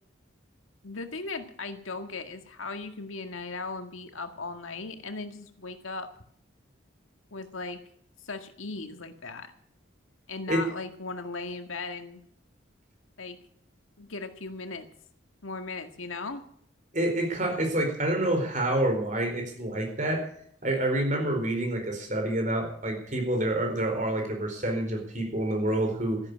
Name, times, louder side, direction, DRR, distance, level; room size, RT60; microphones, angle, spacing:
voice 1, 0.8-6.1 7.3-7.8 8.2-9.5 10.3-12.2 13.2-13.4 14.0-14.9 15.4-16.4, left 3 dB, 85° left, 7 dB, 1.9 m, -37 dB
voice 2, 16.9-20.3 20.6-26.2, right 1 dB, 40° right, 3 dB, 4.3 m, -27 dB
13.5 x 11.0 x 8.4 m, 0.65 s
head